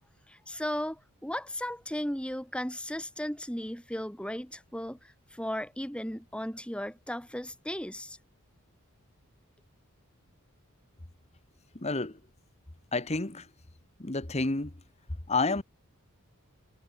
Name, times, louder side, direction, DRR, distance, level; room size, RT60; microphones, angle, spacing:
voice 1, 0.3-8.2, equal, 5° left, 6.1 m, -36 dB
voice 2, 11.7-12.2 12.9-13.5 14.0-14.7 15.3-15.6, left 3 dB, 30° left, 1.3 m, -29 dB
head